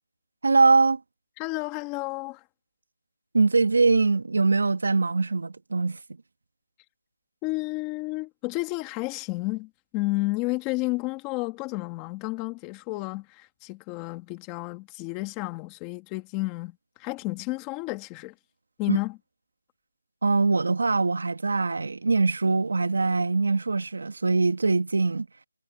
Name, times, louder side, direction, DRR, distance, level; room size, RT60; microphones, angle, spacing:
voice 1, 0.4-1.0 3.3-6.0 18.9-19.0 20.2-25.3, right 3 dB, 60° right, 2.2 m, -22 dB
voice 2, 1.4-2.4 7.4-18.3 18.8-19.2, left 22 dB, 10° left, 2.3 m, -31 dB
figure-of-eight pair, 175°, 0 cm